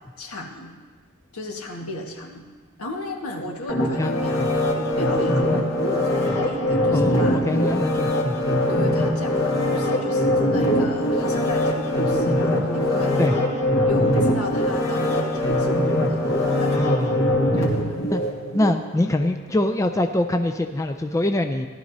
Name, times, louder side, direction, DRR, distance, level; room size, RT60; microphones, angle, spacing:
voice 1, 0.2-0.7 1.3-2.4 2.8-4.6 5.0-7.4 8.7-13.2 13.8-16.3 16.6-17.2 17.5-18.0, left 2 dB, 80° left, 0 dB, 1.5 m, -35 dB
sound 1, 3.7-18.7 19.2-19.3, left 1 dB, 60° left, 2.0 m, -22 dB
voice 2, 4.0-4.5 4.8-4.9 6.9-8.4 13.2-13.3 16.7-17.2 17.6-17.7 18.1-18.2 18.5-21.7, left 1 dB, 15° left, 5 dB, 0.3 m, -24 dB
17.5 x 11.5 x 2.7 m, 1.4 s
head